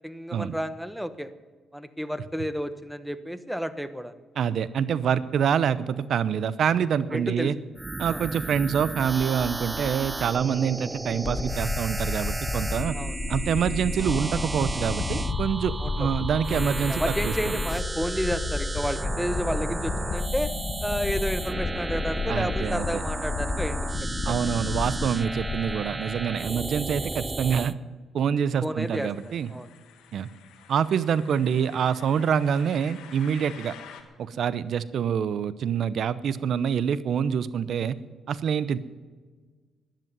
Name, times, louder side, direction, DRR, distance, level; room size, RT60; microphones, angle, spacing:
voice 1, 0.0-1.3 1.7-4.1 7.1-7.5 8.1-8.3 12.9-13.2 15.8-16.1 16.9-20.5 20.8-24.3 28.6-29.7, equal, ahead, 12 dB, 1.1 m, -31 dB
voice 2, 4.4-7.5 8.0-13.0 13.3-17.6 22.3-23.0 24.2-27.7 28.1-29.5 30.1-30.3 30.7-33.7 34.2-38.0 38.3-38.8, right 7 dB, 65° right, 17 dB, 0.8 m, -26 dB
sound 1, 7.8-27.7, right 2 dB, 15° right, 0.6 m, -33 dB
sound 2, 11.2-25.7, left 4 dB, 45° left, 1.0 m, -32 dB
sound 3, 28.8-34.0, left 8 dB, 85° left, 1.8 m, -49 dB
12.5 x 10.5 x 9.7 m, 1.4 s
cardioid pair, 90°, 0 cm